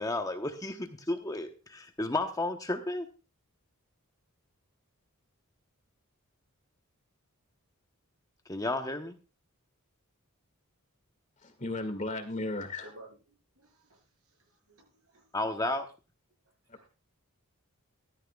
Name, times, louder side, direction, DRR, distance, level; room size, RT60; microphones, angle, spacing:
voice 1, 0.0-3.1 8.5-9.1 15.3-15.9, left 2 dB, 15° left, 6 dB, 0.9 m, -32 dB
voice 2, 11.4-12.9 16.7-16.9, left 2 dB, 35° left, 7 dB, 1.9 m, -35 dB
voice 3, 13.6-15.3 16.7-16.9, right 1 dB, 75° right, 2 dB, 5.7 m, -55 dB
15.0 x 13.0 x 2.3 m, 0.31 s
head